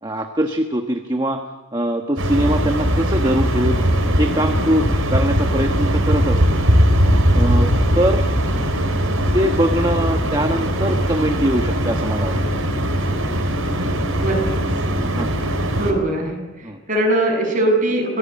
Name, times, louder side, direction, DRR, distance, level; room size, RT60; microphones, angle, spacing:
voice 1, 0.0-1.4 1.7-3.8 4.2-6.6 7.3-8.2 9.3-12.4 15.2-15.4 16.6-16.8, equal, 20° right, 4 dB, 1.2 m, -22 dB
sound 1, 2.2-15.9, equal, 75° right, 4.3 m, -19 dB
voice 2, 14.2-14.9 15.8-18.2, right 1 dB, 35° right, 1 dB, 7.3 m, -21 dB
25.0 x 18.0 x 8.8 m, 1.3 s
head